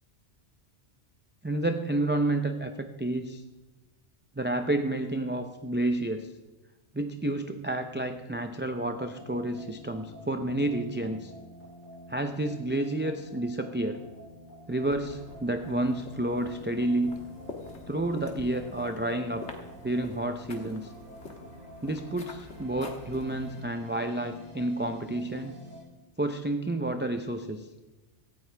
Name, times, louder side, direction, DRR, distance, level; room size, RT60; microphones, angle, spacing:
voice 1, 1.4-3.4 4.4-6.3 6.9-11.3 12.1-14.0 14.7-17.2 17.9-19.4 19.8-20.9 21.8-25.5 26.2-27.7, right 1 dB, 15° right, 5 dB, 0.5 m, -30 dB
sound 1, 8.8-25.8, equal, 85° right, 6.4 m, -48 dB
sound 2, 14.7-23.6, left 3 dB, 75° left, 1.9 m, -47 dB
17.5 x 14.0 x 3.4 m, 1.1 s
omnidirectional pair, 1.2 m